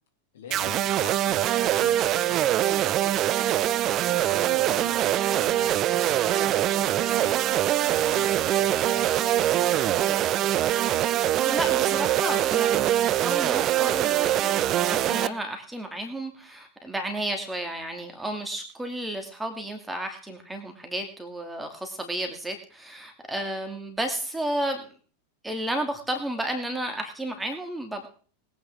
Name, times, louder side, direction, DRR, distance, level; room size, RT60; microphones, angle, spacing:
voice 1, 0.3-2.4 3.1-10.2, left 7 dB, 60° left, 4 dB, 2.8 m, -45 dB
sound 1, 0.5-15.3, right 12 dB, 35° right, 0.5 m, -23 dB
voice 2, 11.4-24.9 25.4-28.1, right 1 dB, 5° right, 4 dB, 2.6 m, -32 dB
21.0 x 9.3 x 3.7 m, 0.41 s
figure-of-eight pair, 90°, 0 cm